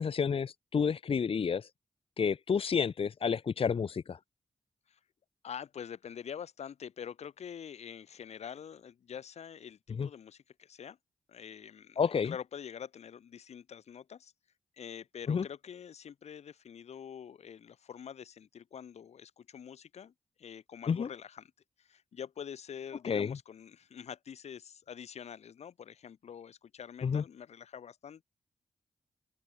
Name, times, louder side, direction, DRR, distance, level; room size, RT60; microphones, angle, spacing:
voice 1, 0.0-1.7 2.2-4.2 10.0-10.1 12.0-12.3 15.3-15.4 20.9-21.1 23.0-23.4 27.0-27.2, left 6 dB, 55° left, 1.0 m, -30 dB
voice 2, 5.4-11.0 11.3-14.3 14.8-20.1 20.4-21.5 21.8-28.2, left 8 dB, 85° left, 2.0 m, -46 dB
open air
cardioid pair, 75°, 11 cm